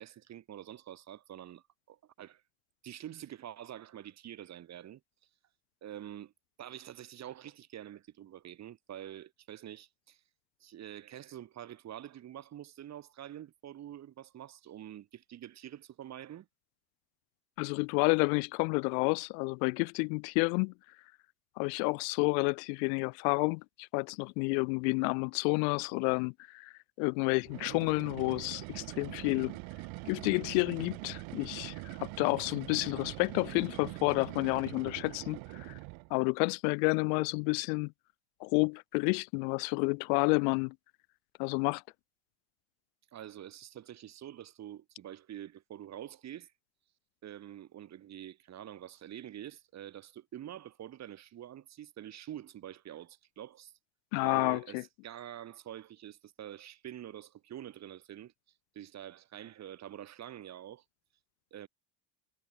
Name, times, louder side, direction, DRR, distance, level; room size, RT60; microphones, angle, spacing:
voice 1, 0.0-2.4 2.8-5.0 5.8-6.3 6.6-10.2 10.6-16.5 43.1-46.5 47.2-53.7 54.2-58.3 58.7-60.8 61.5-61.7, right 11 dB, 35° right, 1.3 m, -46 dB
voice 2, 17.6-20.7 21.6-26.7 27.0-29.6 30.1-35.7 36.1-37.9 38.4-40.7 41.4-41.8 54.1-54.8, left 38 dB, 85° left, 1.1 m, -30 dB
sound 1, 27.4-36.2, right 26 dB, 70° right, 3.6 m, -43 dB
cardioid pair, 140°, 49 cm